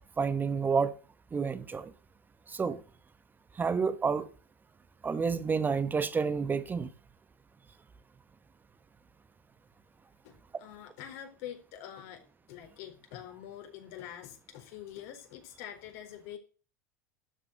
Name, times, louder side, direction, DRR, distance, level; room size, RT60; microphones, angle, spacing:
voice 1, 0.2-0.9 1.3-1.9 2.5-2.8 3.6-4.3 5.0-6.9, right 5 dB, 20° right, 1.3 m, -29 dB
voice 2, 10.2-16.4, left 10 dB, 60° left, 4.4 m, -45 dB
12.5 x 7.8 x 7.9 m
hypercardioid pair, 90°, 9 cm